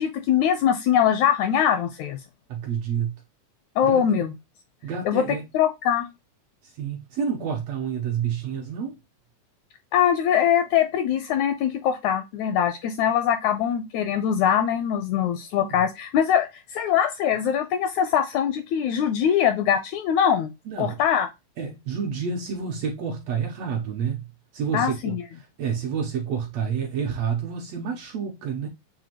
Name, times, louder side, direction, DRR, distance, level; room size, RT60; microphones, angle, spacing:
voice 1, 0.0-2.2 3.8-4.3 5.1-5.3 5.5-6.0 9.9-20.5 20.8-21.3 24.7-25.2, left 9 dB, 80° left, 1.7 m, -22 dB
voice 2, 2.5-3.1 3.8-4.3 4.8-5.4 6.6-9.0 15.6-15.8 20.6-21.0 21.6-24.3 24.5-28.7, right 7 dB, 75° right, 1.6 m, -29 dB
7.0 x 2.6 x 2.9 m
omnidirectional pair, 3.7 m